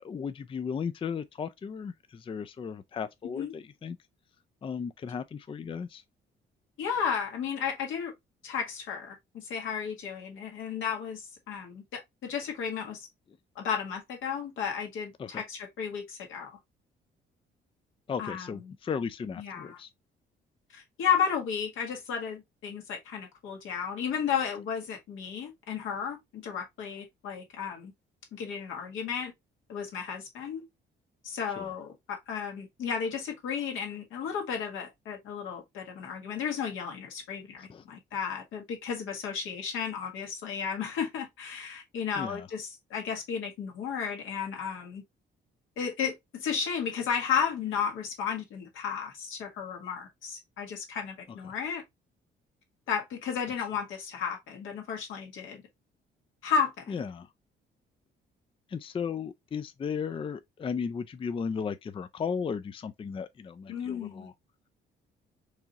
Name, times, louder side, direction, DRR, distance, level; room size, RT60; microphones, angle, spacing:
voice 1, 0.0-4.0 4.6-6.0 15.2-15.4 18.1-19.9 31.6-31.7 37.6-37.8 42.2-42.5 51.4-51.5 56.9-57.3 58.7-64.3, left 6 dB, 25° left, 0.4 m, -35 dB
voice 2, 6.8-8.1 8.4-13.1 13.5-16.6 18.2-18.5 19.4-19.8 20.7-27.9 28.3-29.3 29.7-30.6 31.2-45.0 45.8-51.8 52.9-55.6 56.4-57.0 63.7-64.3, left 7 dB, 85° left, 1.6 m, -33 dB
4.7 x 2.8 x 2.9 m
cardioid pair, 90°, 20 cm